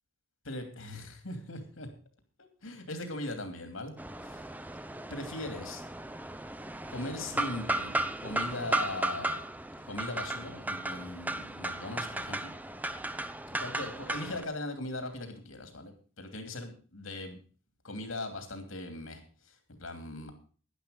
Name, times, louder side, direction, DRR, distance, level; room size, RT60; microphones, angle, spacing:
voice 1, 0.4-1.9 2.4-3.9 4.2-4.4 5.1-5.8 6.9-7.9 8.2-9.4 9.9-12.6 13.5-17.4 17.8-20.3, left 2 dB, 75° left, 6 dB, 2.9 m, -39 dB
sound 1, 4.0-14.4, right 1 dB, 10° right, 0.6 m, -35 dB
11.5 x 11.0 x 5.2 m, 0.39 s
head